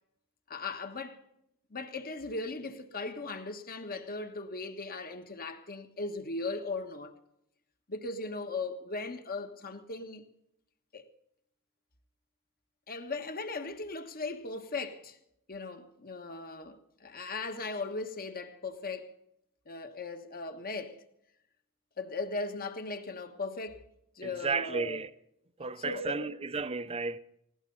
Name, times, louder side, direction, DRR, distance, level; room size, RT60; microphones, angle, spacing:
voice 1, 0.5-1.2 1.7-7.2 7.9-10.2 10.9-11.0 12.9-15.2 15.5-19.1 19.6-21.0 22.0-23.8 24.1-25.0 25.8-26.3, left 3 dB, 45° left, 1.5 m, -38 dB
voice 2, 24.2-25.1 25.6-27.2, right 4 dB, 25° right, 0.6 m, -33 dB
19.0 x 17.5 x 4.0 m
head